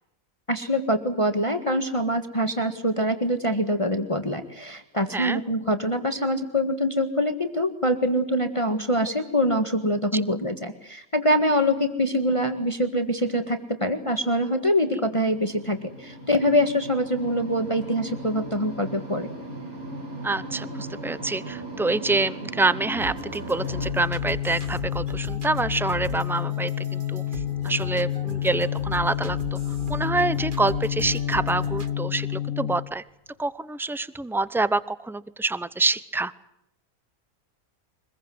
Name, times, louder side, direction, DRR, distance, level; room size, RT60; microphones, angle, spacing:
voice 1, 0.5-19.3, equal, 20° left, 7 dB, 1.7 m, -24 dB
sound 1, 15.3-23.9, right 1 dB, 75° right, 7.5 m, -37 dB
voice 2, 20.2-27.2 27.6-29.6 29.9-33.0 33.4-36.3, right 3 dB, 5° right, 16 dB, 0.4 m, -26 dB
sound 2, 22.9-31.9, right 6 dB, 35° right, 1.3 m, -40 dB
sound 3, 23.6-32.9, left 11 dB, 65° left, 1.5 m, -29 dB
24.5 x 21.5 x 7.8 m, 0.81 s
omnidirectional pair, 1.5 m